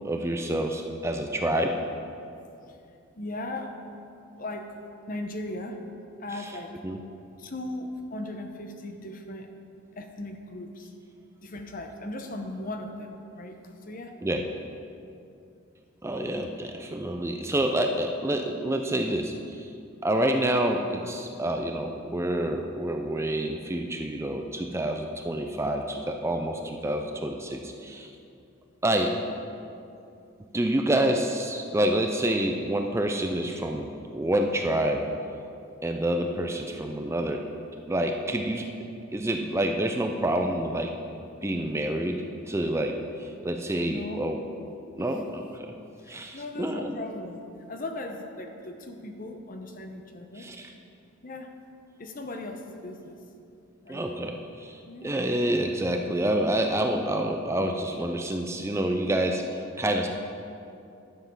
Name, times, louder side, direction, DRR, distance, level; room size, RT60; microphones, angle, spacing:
voice 1, 0.0-1.8 6.8-7.0 14.2-14.4 16.0-19.7 20.0-28.1 28.8-29.2 30.5-35.1 35.8-37.5 37.9-38.7 39.1-40.9 41.4-44.4 45.0-45.7 46.1-47.0 50.4-50.7 53.9-59.4 59.8-60.1, right 1 dB, 15° right, 4 dB, 0.4 m, -28 dB
voice 2, 3.2-3.8 4.4-4.8 5.1-5.8 6.2-6.8 7.4-9.5 10.0-10.9 11.4-13.6 13.9-14.2 43.9-44.4 45.0-45.4 46.0-47.4 47.7-50.5 51.2-51.6 52.0-53.2 53.8-54.1 54.8-55.2 59.1-59.2, left 1 dB, 40° left, 4 dB, 0.8 m, -38 dB
11.5 x 7.1 x 5.5 m, 2.6 s
head